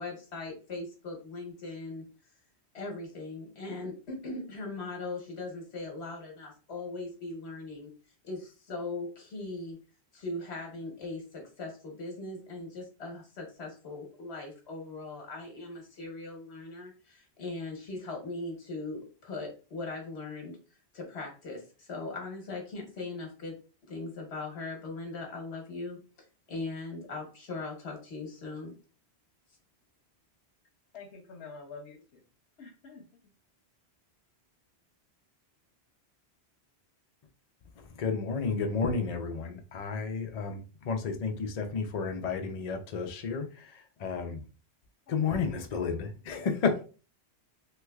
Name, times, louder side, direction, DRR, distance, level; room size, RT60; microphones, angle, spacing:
voice 1, 0.0-2.1 2.7-7.9 8.2-9.8 10.1-23.6 23.9-26.0 26.5-28.7, left 3 dB, 75° left, 1 dB, 1.4 m, -39 dB
voice 2, 30.9-32.2 32.6-33.0 45.1-45.7, left 4 dB, 90° left, 3 dB, 1.0 m, -47 dB
voice 3, 37.8-44.4 45.1-46.8, left 5 dB, 50° left, 5 dB, 0.5 m, -32 dB
3.2 x 3.0 x 2.3 m, 0.35 s
omnidirectional pair, 1.1 m